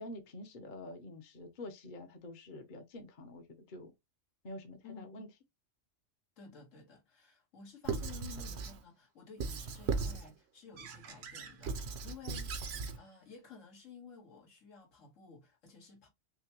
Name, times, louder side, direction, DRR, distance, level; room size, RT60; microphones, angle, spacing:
voice 1, 0.0-3.9 4.4-5.3, left 1 dB, 45° left, 0.9 m, -47 dB
voice 2, 4.8-5.2 6.4-16.1, left 5 dB, 80° left, 1.9 m, -53 dB
Squeak / Writing, 7.8-8.8 9.4-10.3 10.8-13.0, right 4 dB, 60° right, 0.9 m, -38 dB
5.7 x 2.2 x 2.9 m
omnidirectional pair, 1.3 m